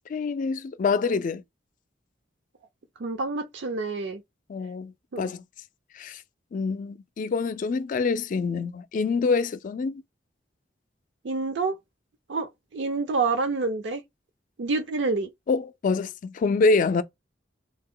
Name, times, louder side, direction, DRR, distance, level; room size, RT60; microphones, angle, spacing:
voice 1, 0.1-1.4 4.5-5.4 5.9-6.2 6.5-10.0 15.5-17.0, left 4 dB, 45° left, 0.3 m, -26 dB
voice 2, 3.0-4.2 5.1-5.3 11.2-11.8 12.3-14.0 14.6-15.3, right 3 dB, 75° right, 0.5 m, -27 dB
2.8 x 2.2 x 3.7 m
head